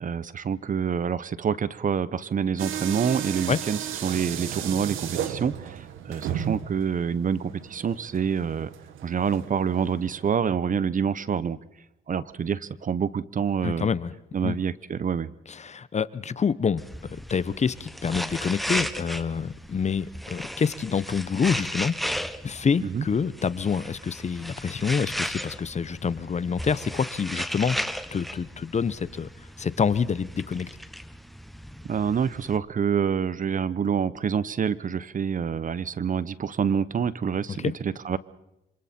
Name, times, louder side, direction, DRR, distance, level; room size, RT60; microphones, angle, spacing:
voice 1, 0.0-8.7 9.0-11.6 12.1-13.9 14.3-15.3 22.8-23.1 31.8-38.2, right 7 dB, 40° right, 17 dB, 0.9 m, -27 dB
sound 1, 2.6-10.3, right 10 dB, 80° right, 1.5 m, -35 dB
voice 2, 13.6-14.1 14.4-14.6 15.5-16.8 17.1-22.0 22.4-29.3 29.6-30.7 37.5-37.7, left 6 dB, 35° left, 17 dB, 0.9 m, -27 dB
sound 2, 16.8-32.6, equal, ahead, 1.1 m, -35 dB
26.5 x 26.5 x 4.4 m, 0.89 s
cardioid pair, 90°, 20 cm